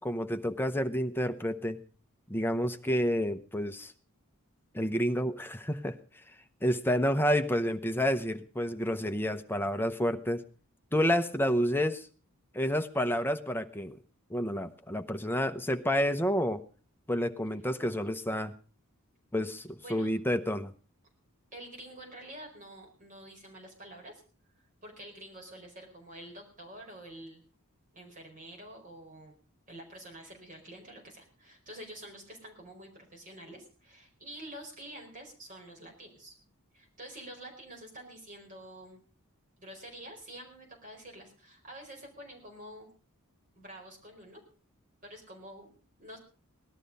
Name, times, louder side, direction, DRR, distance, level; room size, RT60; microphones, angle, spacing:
voice 1, 0.0-1.8 2.3-3.9 4.7-6.0 6.6-10.4 10.9-12.1 12.5-14.0 14.3-16.6 17.1-18.5 19.3-20.7, equal, 10° left, 8 dB, 0.9 m, -29 dB
voice 2, 21.5-24.2 24.8-27.4 27.9-29.4 29.7-36.3 36.7-39.0 39.6-42.9 43.5-44.4 45.0-46.2, right 1 dB, 35° right, 1 dB, 4.9 m, -48 dB
18.5 x 12.5 x 5.4 m, 0.39 s
head